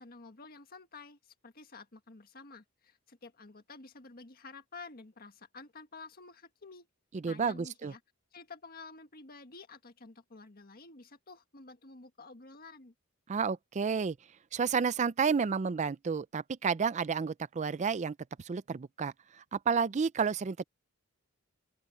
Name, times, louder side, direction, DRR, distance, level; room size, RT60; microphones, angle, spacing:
voice 1, 0.0-6.9 7.2-8.0 8.3-12.9, left 3 dB, 45° left, 1.7 m, -51 dB
voice 2, 7.2-7.9 13.3-14.2 14.5-19.1 19.5-20.6, right 5 dB, 35° right, 0.4 m, -31 dB
open air
head